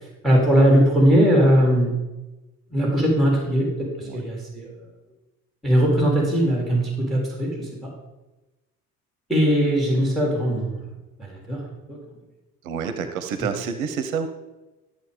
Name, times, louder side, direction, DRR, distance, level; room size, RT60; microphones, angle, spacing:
voice 1, 0.2-1.9 2.7-3.7 4.0-4.7 5.6-7.7 9.3-10.8 11.2-12.0, equal, ahead, -1 dB, 3.7 m, -19 dB
voice 2, 12.6-14.3, right 6 dB, 65° right, 9 dB, 1.0 m, -28 dB
13.0 x 6.9 x 5.2 m, 1.1 s
figure-of-eight pair, 60°, 46 cm